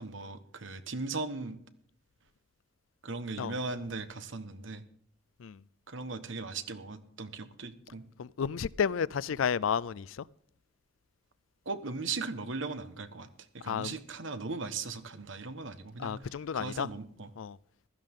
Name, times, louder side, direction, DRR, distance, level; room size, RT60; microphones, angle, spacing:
voice 1, 0.0-1.6 3.0-4.8 5.9-8.0 11.6-13.3 13.5-17.3, right 3 dB, 65° right, 1.2 m, -38 dB
voice 2, 8.2-10.2 13.6-14.0 16.0-16.9 17.4-17.6, left 7 dB, 75° left, 0.4 m, -32 dB
15.5 x 13.5 x 3.7 m
head